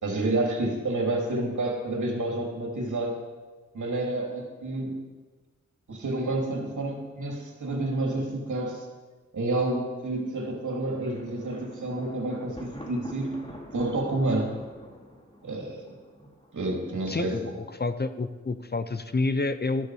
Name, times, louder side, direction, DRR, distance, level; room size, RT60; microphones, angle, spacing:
voice 1, 0.0-3.2 3.7-5.0 5.9-8.9 9.3-13.4 13.7-14.5 15.4-15.9 16.5-17.5, right 2 dB, 80° right, 1 dB, 3.1 m, -29 dB
Thunder, 10.9-16.8, equal, 20° left, 2.7 m, -46 dB
voice 2, 17.1-19.9, left 3 dB, 35° left, 11 dB, 0.8 m, -29 dB
14.0 x 13.0 x 4.9 m, 1.3 s
wide cardioid pair, 75°, 30 cm